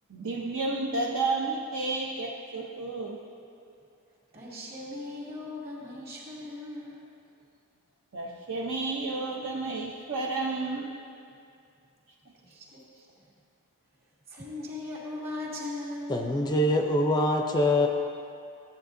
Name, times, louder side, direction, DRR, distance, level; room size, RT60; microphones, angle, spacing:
voice 1, 0.1-3.2 8.1-11.0, right 3 dB, 65° right, -2 dB, 0.7 m, -31 dB
voice 2, 4.3-7.0 12.4-13.2 14.3-16.1, left 2 dB, 45° right, -5 dB, 2.3 m, -39 dB
voice 3, 16.1-17.9, left 1 dB, 20° left, 3 dB, 0.4 m, -24 dB
13.5 x 8.5 x 2.6 m, 2.5 s
head